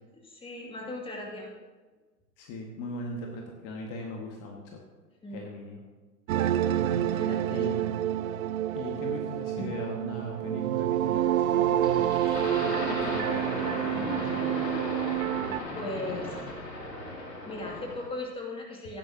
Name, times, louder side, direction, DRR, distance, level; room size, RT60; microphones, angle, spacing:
voice 1, 0.2-1.5 5.2-5.4 7.0-7.8 8.7-8.8 9.6-9.7 14.0-14.5 15.7-16.7 17.4-19.0, left 2 dB, 10° left, -1 dB, 2.5 m, -38 dB
voice 2, 2.4-4.8 5.3-5.8 6.7-7.9 8.7-13.5 13.9-14.6, left 1 dB, 40° left, 0 dB, 1.8 m, -39 dB
sound 1, 6.3-15.6, right 12 dB, 60° right, 0.6 m, -28 dB
sound 2, 11.8-18.1, left 1 dB, 85° left, 2.2 m, -35 dB
15.5 x 10.5 x 2.9 m, 1.3 s
figure-of-eight pair, 105°, 48 cm